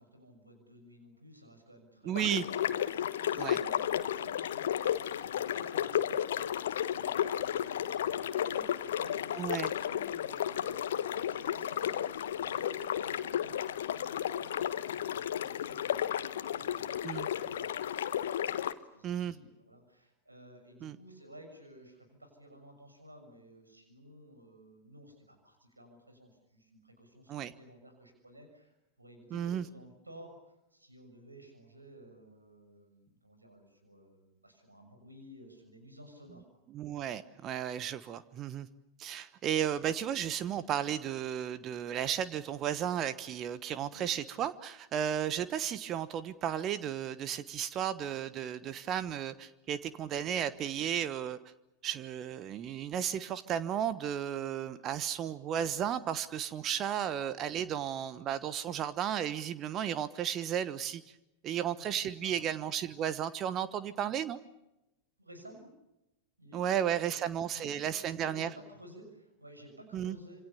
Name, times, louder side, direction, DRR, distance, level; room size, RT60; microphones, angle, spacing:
voice 1, 0.0-16.1 16.5-18.3 18.7-36.6 43.8-44.1 61.5-62.4 65.2-65.7 66.4-70.4, equal, 85° right, 5 dB, 6.6 m, -55 dB
voice 2, 2.0-2.4 3.4-3.6 9.4-9.7 17.0-17.3 19.0-19.3 20.8-21.0 27.3-27.5 29.3-29.6 36.7-38.7 39.0-51.4 51.8-61.0 61.4-64.4 66.5-68.5 69.9-70.2, right 9 dB, 30° right, 14 dB, 1.2 m, -34 dB
sound 1, 2.1-18.7, left 10 dB, 60° left, 1.2 m, -33 dB
27.0 x 26.5 x 7.0 m, 0.90 s
figure-of-eight pair, 90°, 0 cm